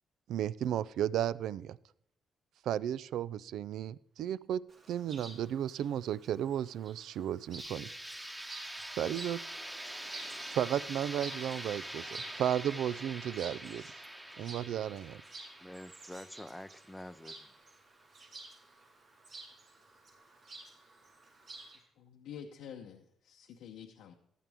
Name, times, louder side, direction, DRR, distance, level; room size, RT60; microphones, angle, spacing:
voice 1, 0.3-1.8 2.6-7.9 9.0-9.4 10.5-13.8 14.4-15.2, right 10 dB, 80° right, 20 dB, 0.3 m, -34 dB
Chirp tweet, 4.7-21.8, right 3 dB, 60° right, 4.5 m, -52 dB
sound 1, 7.6-17.4, right 1 dB, 15° right, 1.4 m, -45 dB
voice 2, 11.1-11.5 15.6-17.5, left 1 dB, 5° left, 11 dB, 0.5 m, -48 dB
voice 3, 22.0-24.1, left 8 dB, 85° left, 2 dB, 0.8 m, -48 dB
14.5 x 11.0 x 3.5 m, 0.70 s
cardioid pair, 90°, 0 cm